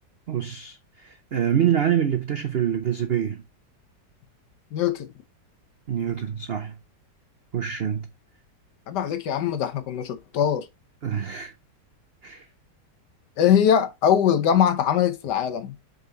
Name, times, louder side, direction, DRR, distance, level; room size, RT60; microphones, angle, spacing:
voice 1, 0.3-3.4 5.9-6.7 7.5-8.1 11.0-11.5 12.2-12.4, right 9 dB, 85° right, 0.5 m, -25 dB
voice 2, 4.7-5.1 8.9-10.7 13.4-15.7, left 9 dB, 70° left, 1.5 m, -22 dB
5.4 x 5.0 x 3.9 m
omnidirectional pair, 1.9 m